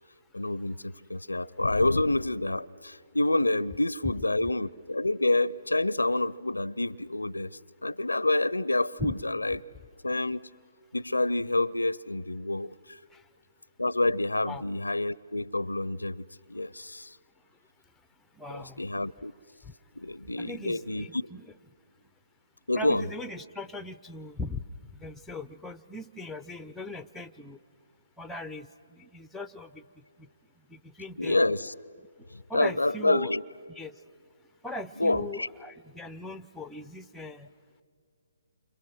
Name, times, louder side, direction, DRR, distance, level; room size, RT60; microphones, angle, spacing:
voice 1, 0.3-9.6 10.0-10.5 10.9-13.0 13.8-17.2 18.5-19.3 20.0-21.3 22.7-23.1 31.2-31.7 32.3-33.4 35.0-35.5, left 2 dB, 85° left, 0.5 m, -28 dB
voice 2, 18.3-18.9 19.6-19.7 20.4-21.4 22.8-24.6 25.0-27.6 28.2-30.0 30.7-31.4 32.5-33.3 33.8-33.9 34.6-37.5, left 2 dB, 5° left, 0.6 m, -39 dB
29.5 x 26.0 x 6.3 m
figure-of-eight pair, 140°, 0 cm